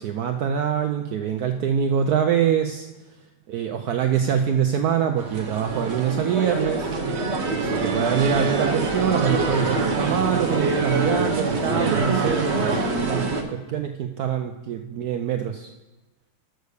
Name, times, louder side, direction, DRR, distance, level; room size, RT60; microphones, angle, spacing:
voice 1, 0.0-2.9 3.5-6.9 7.6-12.7 13.0-15.7, right 8 dB, 85° right, 6 dB, 0.8 m, -24 dB
sound 1, 5.2-13.4, right 3 dB, 45° right, 0.9 m, -24 dB
8.1 x 6.4 x 6.7 m, 1.1 s
omnidirectional pair, 2.3 m